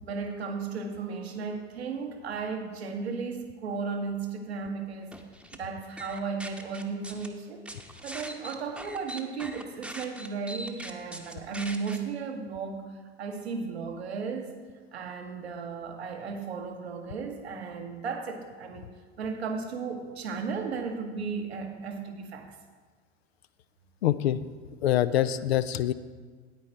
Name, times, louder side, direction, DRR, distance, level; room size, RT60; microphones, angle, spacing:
voice 1, 0.0-5.1 5.5-7.7 8.0-14.6 14.9-18.9 19.2-22.6 24.3-24.4 25.1-25.5, right 5 dB, 75° right, 4 dB, 1.2 m, -35 dB
sound 1, 5.1-5.6 6.0-7.3 7.7-12.0, right 1 dB, 5° right, 0.9 m, -41 dB
voice 2, 24.0-24.4 24.8-25.9, left 12 dB, 70° left, 14 dB, 0.5 m, -25 dB
9.4 x 8.9 x 4.3 m, 1.5 s
figure-of-eight pair, 70°, 32 cm